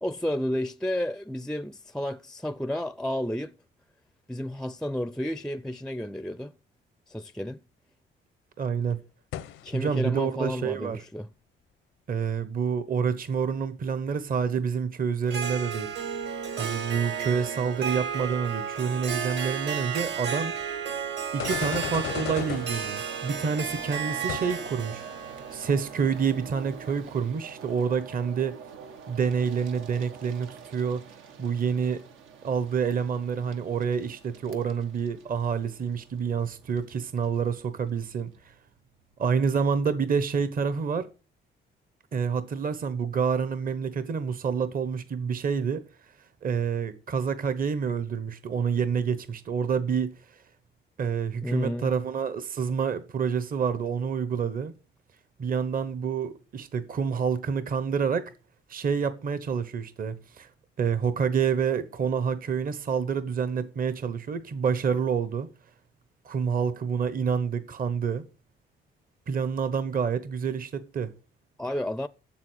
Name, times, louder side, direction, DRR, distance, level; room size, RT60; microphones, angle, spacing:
voice 1, 0.0-3.5 4.3-6.5 7.1-7.6 9.6-11.3 51.4-52.0 71.6-72.1, left 1 dB, 5° left, 0.5 m, -31 dB
voice 2, 8.6-9.0 9.7-11.0 12.1-15.9 16.6-20.5 21.3-25.1 25.5-28.6 29.1-31.1 31.4-32.0 32.4-38.5 39.2-41.1 42.1-45.8 46.4-50.4 51.0-54.7 55.4-58.3 58.7-60.5 60.8-65.5 66.2-68.2 69.3-71.1, right 6 dB, 45° right, 1.0 m, -28 dB
sound 1, 9.3-9.8 20.6-20.7 21.4-23.0 24.3-24.8, left 11 dB, 85° left, 0.7 m, -34 dB
Harp, 15.3-27.1, right 7 dB, 65° right, 2.5 m, -33 dB
sound 2, 22.3-39.1, right 6 dB, 90° right, 1.4 m, -47 dB
7.4 x 7.3 x 8.0 m
cardioid pair, 90°, 20 cm